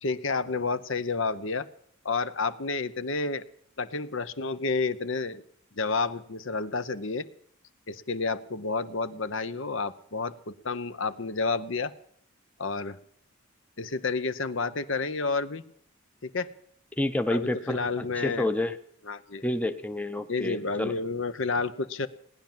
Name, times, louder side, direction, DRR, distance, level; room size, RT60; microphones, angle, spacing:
voice 1, 0.0-1.7 2.0-3.4 3.8-5.4 5.8-7.3 7.9-11.9 12.6-13.0 13.8-15.6 16.2-16.5 17.3-18.5 19.1-19.4 20.3-22.1, left 4 dB, 60° left, 12 dB, 0.9 m, -30 dB
voice 2, 17.0-18.8 19.4-21.0, left 1 dB, 5° left, 8 dB, 0.7 m, -29 dB
18.5 x 10.5 x 7.4 m, 0.65 s
head